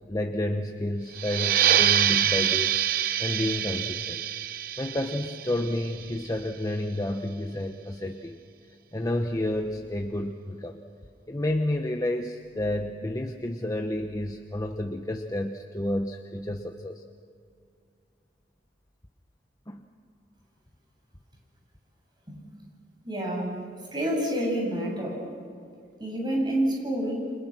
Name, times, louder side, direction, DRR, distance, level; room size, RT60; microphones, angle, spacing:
voice 1, 0.1-4.2 4.8-8.4 8.9-10.8 11.3-17.0 19.7-19.9, left 1 dB, 20° left, 4 dB, 1.0 m, -30 dB
sound 1, 1.1-6.4, right 10 dB, 55° right, 0.9 m, -26 dB
voice 2, 23.0-23.6 23.9-25.2 26.0-27.3, right 1 dB, 25° right, -1 dB, 7.8 m, -28 dB
30.0 x 26.0 x 6.1 m, 2.4 s
head